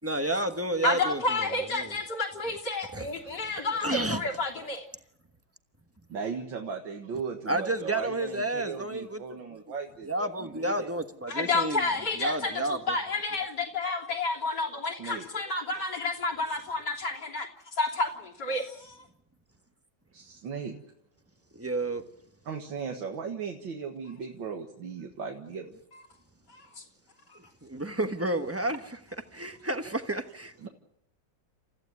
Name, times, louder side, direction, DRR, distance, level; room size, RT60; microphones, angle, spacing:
voice 1, 0.0-1.9 2.4-2.5 2.9-3.1 3.8-4.2 7.5-9.2 10.1-11.8 12.2-13.0 21.5-22.0 27.3-30.7, right 1 dB, 10° right, 0.9 m, -31 dB
voice 2, 0.8-4.9 11.3-17.5 17.8-19.0 26.5-26.8, left 3 dB, 60° left, 3.8 m, -30 dB
voice 3, 6.1-10.9 15.0-15.3 20.1-20.8 22.5-25.7 30.6-30.7, right 5 dB, 85° right, 2.4 m, -37 dB
29.0 x 15.0 x 9.5 m
omnidirectional pair, 2.1 m